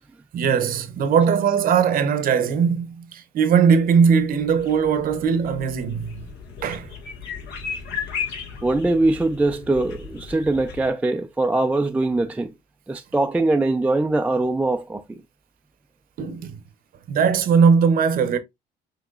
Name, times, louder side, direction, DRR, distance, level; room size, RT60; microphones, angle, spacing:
voice 1, 0.3-6.2 6.6-6.9 16.2-16.6 17.1-18.4, right 6 dB, 60° right, 0.8 m, -19 dB
sound 1, 3.7-10.9, left 6 dB, 80° left, 1.5 m, -35 dB
voice 2, 8.6-12.5 12.9-15.2, right 2 dB, 10° right, 0.3 m, -22 dB
5.9 x 2.9 x 2.4 m
cardioid pair, 110°, 17 cm